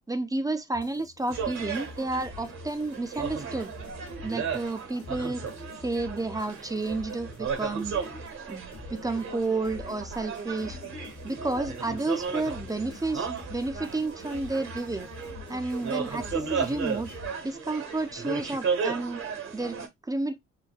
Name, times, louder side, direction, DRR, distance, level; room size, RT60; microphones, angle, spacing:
voice 1, 0.1-3.7 4.2-5.4 5.8-8.0 8.5-10.8 11.2-15.1 15.5-17.1 17.4-19.2 19.5-19.8 20.0-20.4, right 2 dB, 10° right, 0.4 m, -31 dB
sound 1, 0.7-17.3, left 5 dB, 50° left, 1.0 m, -46 dB
sound 2, 1.3-19.9, right 6 dB, 65° right, 1.2 m, -35 dB
3.9 x 2.1 x 2.3 m
cardioid pair, 90°, 30 cm